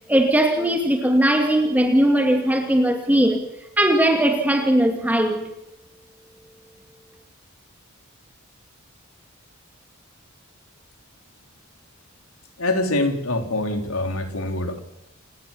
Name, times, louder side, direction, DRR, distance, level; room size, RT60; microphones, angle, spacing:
voice 1, 0.1-3.4 3.8-5.5, right 1 dB, 10° right, 3 dB, 2.4 m, -19 dB
voice 2, 12.6-14.8, left 2 dB, 85° left, 5 dB, 4.0 m, -24 dB
30.0 x 18.0 x 7.5 m, 0.86 s
head